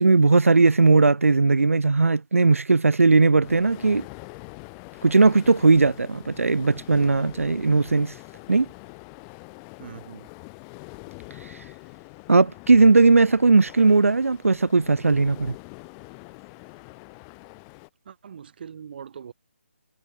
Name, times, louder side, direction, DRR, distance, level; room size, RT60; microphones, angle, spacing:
voice 1, 0.0-4.1 5.0-8.1 8.5-8.7 12.3-15.5, right 3 dB, 90° right, 0.5 m, -18 dB
sound 1, 3.4-17.9, left 40 dB or more, 20° left, 2.2 m, -44 dB
voice 2, 9.8-10.3 18.1-19.3, right 7 dB, 45° right, 1.9 m, -41 dB
figure-of-eight pair, 150°, 7 cm